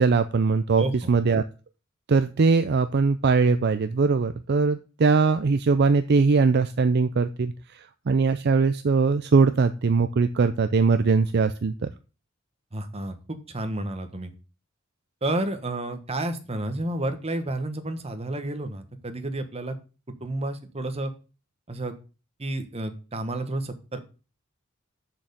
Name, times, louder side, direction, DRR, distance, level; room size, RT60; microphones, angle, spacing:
voice 1, 0.0-1.4 2.1-11.9, right 4 dB, 55° right, 11 dB, 0.5 m, -21 dB
voice 2, 0.8-1.1 12.7-14.3 15.2-19.8 20.2-21.1 21.7-21.9 22.4-24.0, right 1 dB, 30° right, 8 dB, 1.3 m, -31 dB
6.5 x 6.1 x 6.8 m, 0.33 s
head